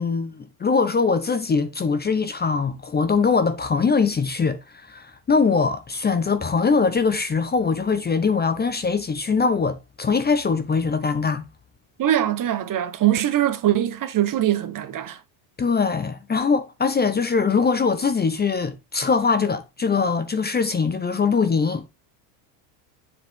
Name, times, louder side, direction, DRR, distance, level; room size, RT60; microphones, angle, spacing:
voice 1, 0.0-11.5 15.6-21.9, left 5 dB, 20° left, 0.8 m, -22 dB
voice 2, 12.0-15.2, right 12 dB, 40° right, 1.3 m, -22 dB
7.5 x 6.6 x 3.7 m
supercardioid pair, 110°, 50 cm